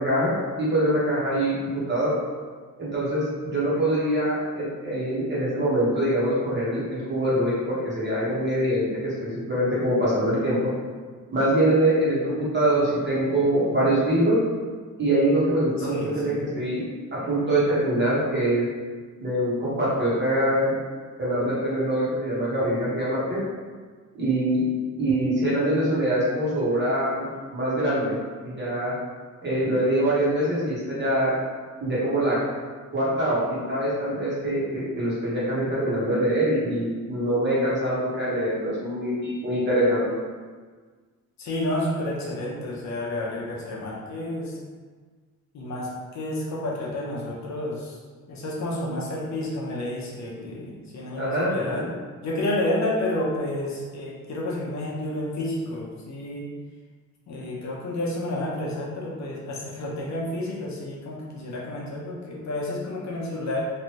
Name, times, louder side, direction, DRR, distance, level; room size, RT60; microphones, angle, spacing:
voice 1, 0.0-2.1 2.8-10.6 11.3-14.4 15.0-16.8 17.1-18.7 19.2-20.7 21.2-23.4 24.1-24.6 25.0-28.2 28.4-28.9 29.4-31.3 31.8-32.4 32.9-40.0 51.2-51.9, right 1 dB, 35° right, -8 dB, 1.1 m, -24 dB
voice 2, 15.8-16.4 41.4-44.6 45.5-48.0 48.3-51.9 52.2-56.5 57.3-63.6, left 1 dB, 60° left, -4 dB, 0.7 m, -30 dB
3.1 x 2.6 x 2.9 m, 1.5 s
wide cardioid pair, 165°, 31 cm